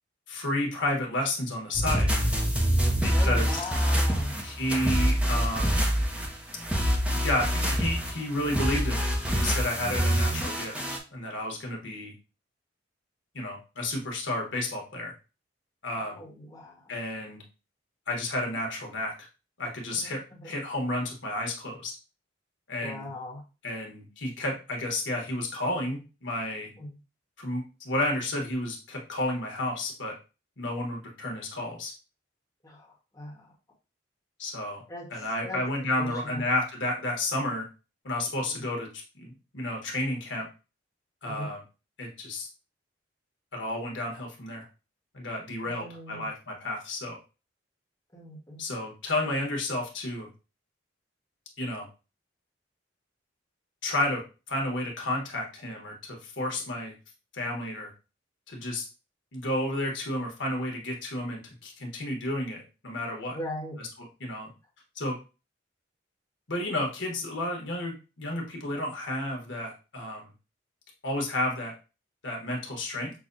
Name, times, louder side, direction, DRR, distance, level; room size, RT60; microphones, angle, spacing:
voice 1, 0.3-2.1 3.0-3.6 4.4-5.8 7.2-12.1 13.3-15.1 15.8-16.2 16.9-17.4 18.1-19.3 19.6-21.9 22.7-23.1 23.6-26.7 27.4-30.1 30.6-31.9 34.4-34.8 35.1-37.7 38.0-40.5 41.2-41.6 42.0-42.5 43.5-44.6 45.1-47.2 48.6-50.3 51.6-51.9 53.8-54.2 54.5-56.9 57.3-57.9 58.5-58.9 59.3-63.4 63.8-64.5 64.9-65.2 66.5-70.3 71.0-71.7 72.2-73.1, left 1 dB, 75° left, 0 dB, 1.2 m, -31 dB
sound 1, 1.7-11.0, equal, 5° right, 0.6 m, -26 dB
voice 2, 3.1-4.3 9.8-10.6 16.0-16.9 19.9-20.5 22.8-23.4 26.7-26.9 32.6-32.9 33.1-33.4 34.9-35.6 36.0-36.4 38.4-38.5 41.2-41.5 45.6-46.3 48.1-48.6 63.3-63.8, left 1 dB, 20° left, -4 dB, 1.2 m, -40 dB
6.0 x 2.2 x 2.5 m, 0.31 s
head